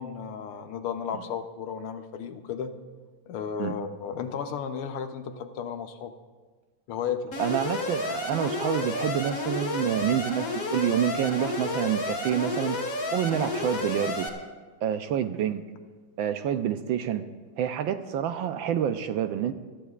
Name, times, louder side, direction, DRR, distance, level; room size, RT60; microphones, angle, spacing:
voice 1, 0.0-2.7 3.3-6.1 6.9-7.4, left 7 dB, 90° left, 7 dB, 1.7 m, -34 dB
Alarm, 7.3-14.3, left 2 dB, 40° left, 1.8 m, -31 dB
voice 2, 7.4-12.8 13.1-14.3 14.8-15.6 16.2-17.2 17.6-19.5, right 9 dB, 75° right, 9 dB, 1.3 m, -27 dB
25.0 x 13.5 x 2.4 m, 1.4 s
omnidirectional pair, 2.3 m